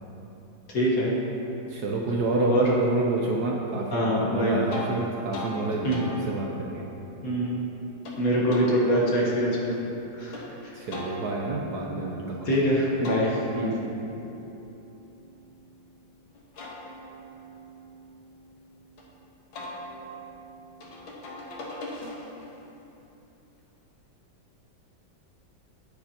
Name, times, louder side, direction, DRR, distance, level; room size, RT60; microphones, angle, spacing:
voice 1, 0.7-1.1 2.5-2.7 3.9-4.6 5.8-6.1 7.2-7.7 8.2-9.8 10.2-10.4 12.4-13.7, equal, 50° left, -4 dB, 1.6 m, -24 dB
voice 2, 1.7-6.9 10.8-12.5, right 3 dB, 65° right, -1 dB, 1.1 m, -28 dB
sound 1, 4.7-4.9 5.3-5.5 5.9-8.2 8.5-10.4 10.9-12.6 13.0-15.9 16.3-19.0 19.5-22.5, left 1 dB, 90° left, 2.1 m, -41 dB
10.0 x 9.9 x 2.9 m, 3.0 s
omnidirectional pair, 2.2 m